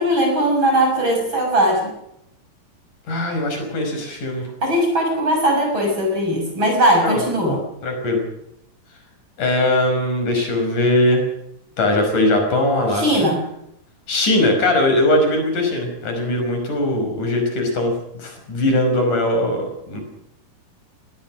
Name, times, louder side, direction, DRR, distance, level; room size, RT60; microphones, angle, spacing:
voice 1, 0.0-1.9 4.6-7.6 12.9-13.4, equal, 35° right, 2 dB, 6.8 m, -19 dB
voice 2, 3.1-4.4 7.0-7.2 7.8-8.2 9.4-11.2 11.8-13.3 14.1-20.0, left 1 dB, 60° left, 4 dB, 6.8 m, -20 dB
23.5 x 18.5 x 6.4 m, 0.78 s
omnidirectional pair, 4.1 m